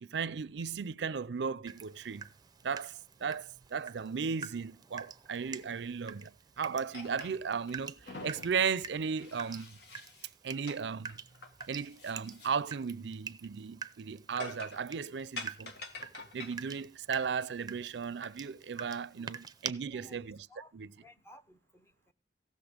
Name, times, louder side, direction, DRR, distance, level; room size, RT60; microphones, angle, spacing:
voice 1, 0.0-2.3 2.6-9.7 10.4-11.2 11.7-15.7 16.3-20.5 20.7-20.9, right 6 dB, 70° right, 0.5 m, -36 dB
Water tap faucet / Drip, 1.7-19.7, right 6 dB, 25° right, 0.6 m, -47 dB
sound 1, 6.9-7.7 8.0-10.3 10.7-10.8 11.1-12.5 12.8-12.9 14.4-14.9 15.4-16.6, left 3 dB, 65° left, 1.8 m, -46 dB
voice 2, 19.8-20.7 21.0-22.1, equal, 15° left, 0.8 m, -57 dB
15.5 x 6.5 x 5.1 m
head